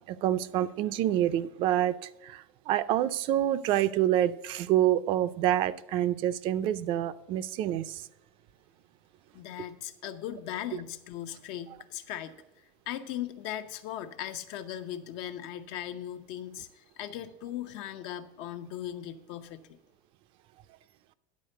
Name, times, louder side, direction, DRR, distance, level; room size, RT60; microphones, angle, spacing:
voice 1, 0.1-8.0 10.7-10.8, right 12 dB, 50° right, 0.4 m, -27 dB
voice 2, 9.3-12.3 12.9-19.6, left 11 dB, 65° left, 0.7 m, -38 dB
10.5 x 4.4 x 6.6 m
cardioid pair, 145°, 11 cm